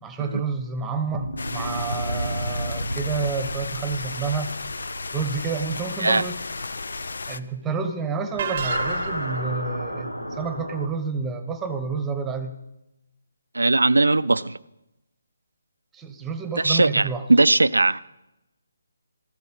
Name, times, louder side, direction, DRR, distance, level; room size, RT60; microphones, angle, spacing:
voice 1, 0.0-4.5 5.1-6.4 7.3-12.5 15.9-17.2, right 5 dB, 10° right, 1.1 m, -29 dB
sound 1, 1.1-6.6 8.3-10.9, equal, 90° left, 1.5 m, -32 dB
sound 2, 1.4-7.4, left 3 dB, 60° left, 0.6 m, -34 dB
sound 3, 8.4-9.4, right 7 dB, 40° right, 0.8 m, -31 dB
voice 2, 13.5-14.6 16.6-18.0, right 2 dB, 70° right, 0.4 m, -19 dB
15.0 x 13.5 x 5.5 m
figure-of-eight pair, 145°, 0 cm